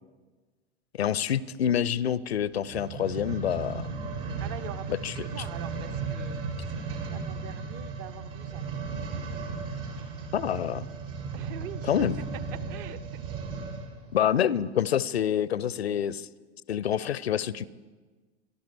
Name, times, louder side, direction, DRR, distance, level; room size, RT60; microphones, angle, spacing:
voice 1, 1.0-3.9 4.9-5.5 10.3-10.8 11.8-12.2 14.1-16.3 16.7-17.7, left 9 dB, 80° left, 20 dB, 0.5 m, -27 dB
sound 1, 2.6-13.9 14.5-14.6, right 4 dB, 60° right, 2.7 m, -35 dB
voice 2, 4.4-6.4 7.0-8.6 11.3-12.1 12.7-13.0 14.3-14.6, right 11 dB, 45° right, 13 dB, 0.8 m, -43 dB
17.0 x 12.0 x 4.8 m, 1.4 s
figure-of-eight pair, 85°, 31 cm